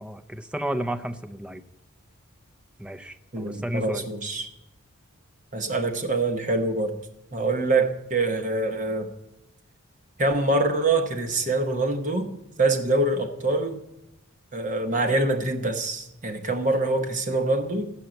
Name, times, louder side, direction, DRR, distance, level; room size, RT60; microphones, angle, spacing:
voice 1, 0.0-1.6 2.8-4.1, right 1 dB, 5° right, 8 dB, 0.5 m, -32 dB
voice 2, 3.3-4.5 5.5-7.0 7.3-9.1 10.2-13.8 14.5-17.9, right 2 dB, 35° right, 5 dB, 1.1 m, -25 dB
15.0 x 5.6 x 7.7 m, 0.93 s
head